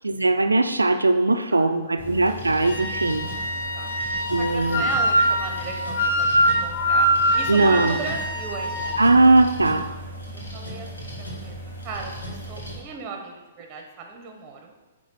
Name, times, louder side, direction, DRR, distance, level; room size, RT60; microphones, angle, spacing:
voice 1, 0.0-3.3 4.3-4.8 7.5-8.0 9.0-9.9, right 2 dB, 85° right, 8 dB, 0.4 m, -19 dB
sound 1, 2.0-12.8, right 1 dB, 80° left, 1.7 m, -37 dB
Wind instrument woodwind instrument, 2.6-9.0, equal, 55° left, 0.9 m, -23 dB
voice 2, 3.6-3.9 4.2-7.1 7.3-9.2 10.3-11.6 11.8-14.7, right 4 dB, 25° right, 3 dB, 0.9 m, -36 dB
8.7 x 3.0 x 4.2 m, 1.2 s
figure-of-eight pair, 115°, 0 cm